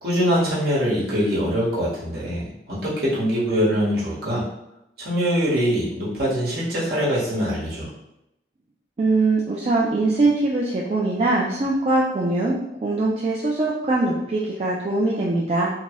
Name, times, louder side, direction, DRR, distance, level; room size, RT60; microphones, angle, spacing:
voice 1, 0.0-2.4 2.7-4.4 5.0-7.9, equal, 60° right, -7 dB, 1.1 m, -23 dB
voice 2, 9.0-12.6 12.8-15.7, right 2 dB, 35° right, -5 dB, 0.3 m, -22 dB
2.8 x 2.2 x 2.9 m, 0.85 s
head